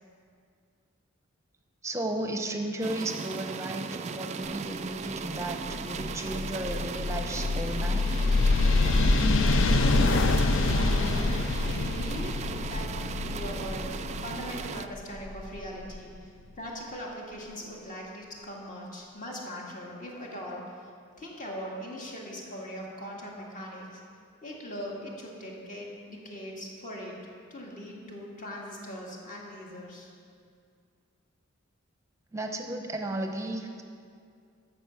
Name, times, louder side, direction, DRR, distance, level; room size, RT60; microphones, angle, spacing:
voice 1, 1.8-8.1 32.3-33.8, right 1 dB, 15° right, 3 dB, 0.8 m, -34 dB
sound 1, 2.8-14.9, right 5 dB, 30° right, 0.3 m, -37 dB
sound 2, 5.3-16.0, left 3 dB, 65° left, 0.6 m, -26 dB
voice 2, 9.7-13.9 14.2-20.9 21.2-24.0 24.4-27.1 27.5-30.1, equal, 40° left, -2 dB, 1.9 m, -40 dB
13.0 x 6.7 x 5.9 m, 2.3 s
head